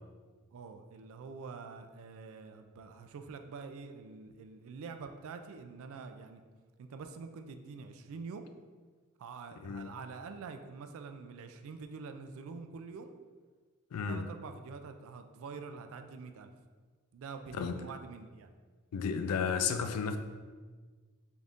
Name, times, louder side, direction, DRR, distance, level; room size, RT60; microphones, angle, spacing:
voice 1, 0.5-6.4 6.8-8.5 9.2-13.1 14.1-16.5 17.1-18.5, right 4 dB, 65° right, 8 dB, 0.3 m, -46 dB
voice 2, 13.9-14.3 17.5-17.8 18.9-20.2, left 6 dB, 85° left, 8 dB, 0.3 m, -33 dB
3.9 x 3.4 x 2.4 m, 1.4 s
head